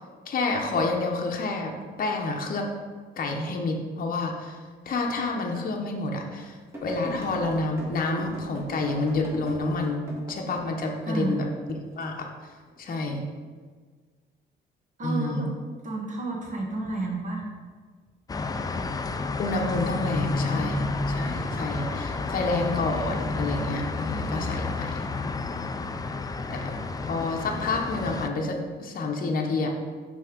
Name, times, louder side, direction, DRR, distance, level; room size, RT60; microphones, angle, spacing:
voice 1, 0.3-2.7 3.2-4.6 4.9-6.6 6.8-11.5 12.0-12.3 12.8-13.2 15.0-15.5 19.4-25.0 26.5-26.7 27.0-29.7, left 2 dB, 45° left, 1 dB, 0.8 m, -29 dB
sound 1, 5.2-5.3 5.8-5.9 6.7-11.0 11.4-12.0 12.7-13.0, equal, 10° right, 1.8 m, -40 dB
voice 2, 11.0-11.4 15.0-15.5 15.8-17.4 26.7-26.8, right 2 dB, 40° right, -1 dB, 1.4 m, -31 dB
sound 2, 18.3-28.3, left 3 dB, 20° left, 0.3 m, -30 dB
5.5 x 3.4 x 5.1 m, 1.5 s
cardioid pair, 90°, 20 cm